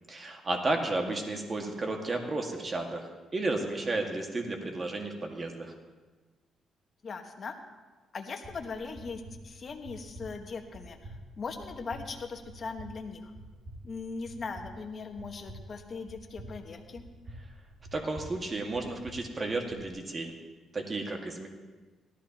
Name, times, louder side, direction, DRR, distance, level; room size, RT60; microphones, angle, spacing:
voice 1, 0.1-5.7 17.9-20.3 20.7-21.5, right 2 dB, 35° right, 2 dB, 1.9 m, -33 dB
voice 2, 7.0-7.5 8.1-11.0 11.4-13.3 13.8-17.0, left 4 dB, 45° left, 4 dB, 1.4 m, -39 dB
sound 1, 8.4-19.9, right 1 dB, 55° right, 2.3 m, -49 dB
18.0 x 13.5 x 3.0 m, 1.3 s
cardioid pair, 90°, 0 cm